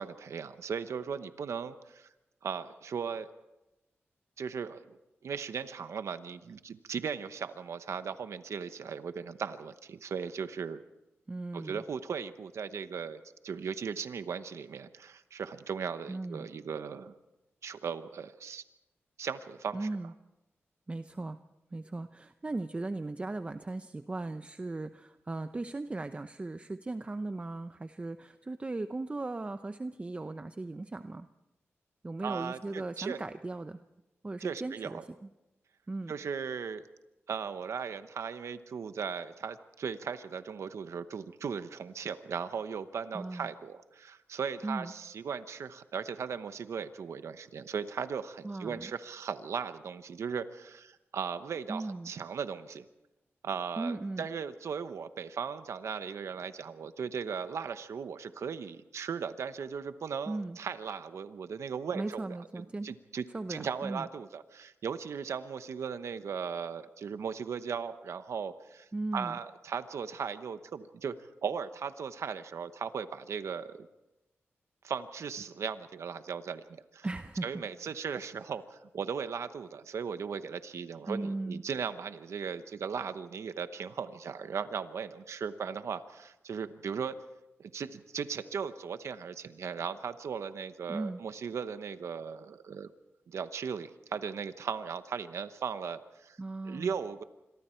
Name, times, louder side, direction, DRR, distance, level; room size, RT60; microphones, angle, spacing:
voice 1, 0.0-2.1 2.4-3.3 4.4-5.0 5.2-10.8 11.5-17.1 17.6-18.6 19.2-19.9 32.2-33.2 34.4-35.0 36.1-36.8 37.3-52.8 53.4-63.2 63.5-71.1 71.4-73.9 74.8-77.1 77.4-87.2 87.6-92.9 93.3-96.4 96.6-97.2, right 6 dB, 80° right, 11 dB, 1.0 m, -37 dB
voice 2, 11.3-11.8 16.1-16.5 19.7-20.1 20.9-21.4 21.7-31.3 32.0-33.8 34.2-35.0 35.9-36.1 43.1-43.5 44.6-44.9 48.4-48.9 51.7-52.1 53.8-54.3 60.3-60.6 61.9-62.9 63.3-64.1 68.9-69.4 77.0-77.5 81.1-81.6 90.9-91.2 96.4-96.9, right 2 dB, 25° right, 9 dB, 0.7 m, -37 dB
27.0 x 23.0 x 4.5 m, 0.97 s
wide cardioid pair, 85°, 5 cm